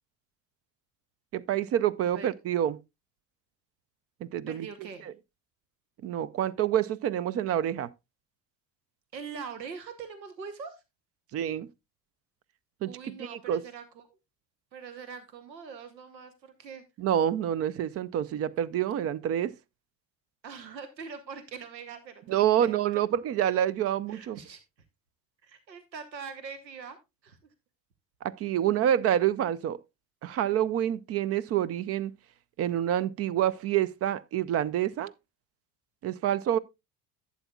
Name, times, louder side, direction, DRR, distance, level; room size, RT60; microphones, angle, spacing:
voice 1, 1.3-2.8 4.2-4.7 6.0-7.9 11.3-11.7 12.8-12.9 13.2-13.6 17.0-19.5 22.3-24.4 28.2-29.8 30.2-32.1 32.6-35.1 36.0-36.6, right 11 dB, 30° right, 0.4 m, -27 dB
voice 2, 4.5-5.1 9.1-10.8 12.8-14.0 14.7-16.8 20.4-23.0 24.1-24.6 25.4-27.0 27.2-27.4, right 6 dB, 85° right, 1.2 m, -43 dB
11.5 x 8.3 x 2.3 m
figure-of-eight pair, 65°, 50 cm